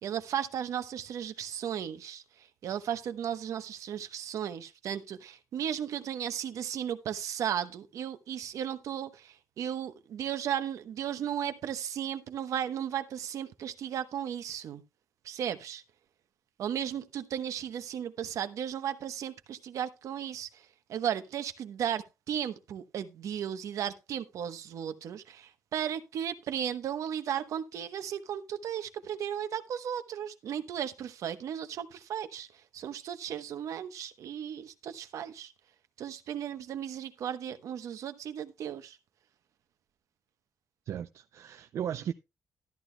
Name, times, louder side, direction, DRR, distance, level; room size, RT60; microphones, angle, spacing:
voice 1, 0.0-2.2 2.6-14.8 15.2-15.8 16.6-20.5 20.9-32.5 32.7-35.5 36.0-39.0, right 9 dB, 80° right, 1.0 m, -35 dB
voice 2, 40.9-42.1, right 9 dB, 65° right, 0.4 m, -36 dB
13.0 x 11.5 x 2.2 m
wide cardioid pair, 170°, 5 cm